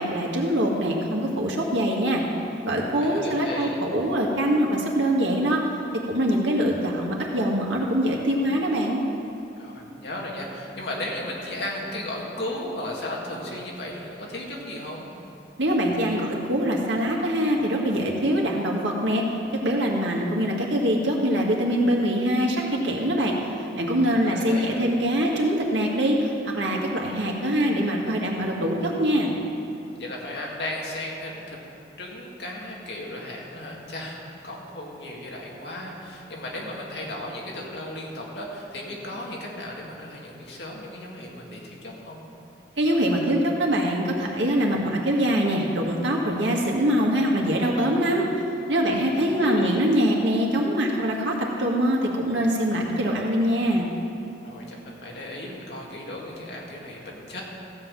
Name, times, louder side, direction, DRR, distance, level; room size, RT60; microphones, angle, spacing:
voice 1, 0.0-2.2 2.6-5.6 6.0-9.0 15.6-19.2 19.6-23.4 23.8-29.3 42.8-48.3 48.7-53.9, equal, 90° right, -2 dB, 1.9 m, -23 dB
voice 2, 2.9-3.8 9.6-15.1 23.8-24.8 30.0-31.6 32.0-42.2 48.9-49.1 49.4-50.0 54.4-57.4, left 1 dB, 70° left, -2 dB, 2.0 m, -35 dB
15.0 x 5.7 x 7.6 m, 2.7 s
head